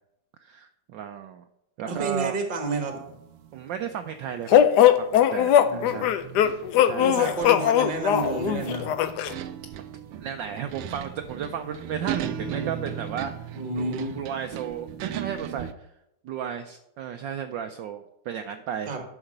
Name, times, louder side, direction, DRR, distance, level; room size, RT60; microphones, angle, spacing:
voice 1, 0.4-1.4 1.8-2.4 3.5-6.1 6.4-7.2 10.2-13.5 13.8-15.9 16.2-18.9, right 8 dB, 70° right, 6 dB, 1.2 m, -34 dB
voice 2, 1.8-3.0 5.6-6.1 7.0-8.9 13.5-14.2 18.9-19.0, right 3 dB, 25° right, 4 dB, 1.4 m, -30 dB
sound 1, 2.9-5.6 6.2-15.7, right 9 dB, 90° right, 1.6 m, -37 dB
sound 2, 4.5-9.3, left 10 dB, 75° left, 0.9 m, -20 dB
12.0 x 4.9 x 6.5 m, 0.83 s
omnidirectional pair, 2.4 m